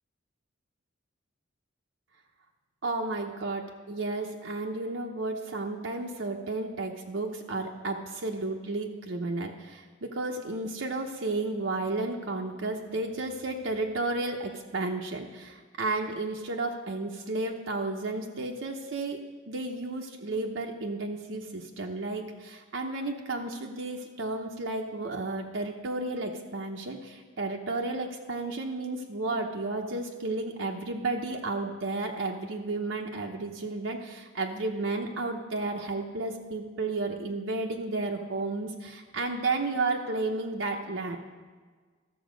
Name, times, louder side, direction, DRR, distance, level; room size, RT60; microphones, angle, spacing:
voice 1, 2.8-19.2 19.5-41.2, right 2 dB, 75° right, 1 dB, 0.8 m, -32 dB
13.5 x 7.1 x 5.1 m, 1.5 s
head